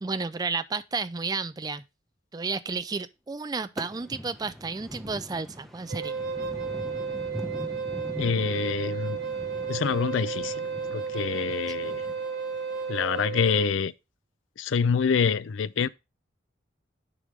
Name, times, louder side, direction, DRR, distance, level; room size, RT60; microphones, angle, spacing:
voice 1, 0.0-1.8 2.3-6.2, right 4 dB, 20° right, 0.4 m, -32 dB
sound 1, 3.8-13.1, equal, ahead, 0.9 m, -42 dB
Wind instrument woodwind instrument, 5.9-13.7, right 5 dB, 60° right, 1.1 m, -33 dB
voice 2, 8.2-9.2 9.7-12.0 12.9-13.9 14.6-15.9, left 6 dB, 90° left, 0.4 m, -26 dB
9.9 x 5.2 x 3.2 m
head